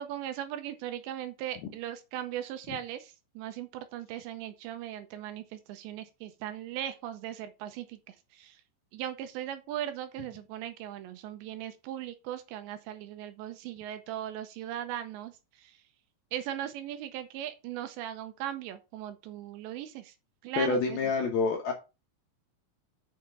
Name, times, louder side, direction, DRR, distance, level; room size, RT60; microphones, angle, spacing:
voice 1, 0.0-8.6 8.9-15.8 16.3-20.1 20.4-21.1, right 11 dB, 85° right, 2.7 m, -38 dB
voice 2, 20.6-21.7, left 4 dB, 75° left, 2.2 m, -27 dB
6.8 x 6.6 x 4.9 m
omnidirectional pair, 5.7 m